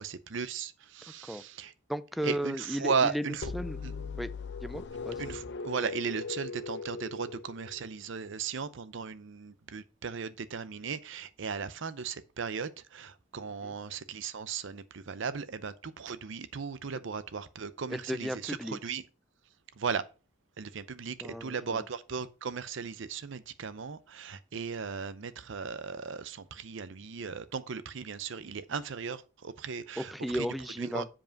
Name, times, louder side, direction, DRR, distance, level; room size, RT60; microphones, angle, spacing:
voice 1, 0.0-1.7 2.2-3.5 3.8-3.9 5.2-19.0 19.8-20.1 20.6-30.5 30.8-31.0, right 5 dB, 70° right, 0.6 m, -36 dB
voice 2, 1.9-3.2 3.5-3.8 4.2-4.3 4.6-5.2 13.6-13.7 17.9-18.8 21.2-21.8 30.0-31.1, equal, ahead, 0.4 m, -34 dB
sound 1, 3.4-8.2, left 4 dB, 60° left, 0.6 m, -39 dB
7.3 x 5.2 x 5.1 m
head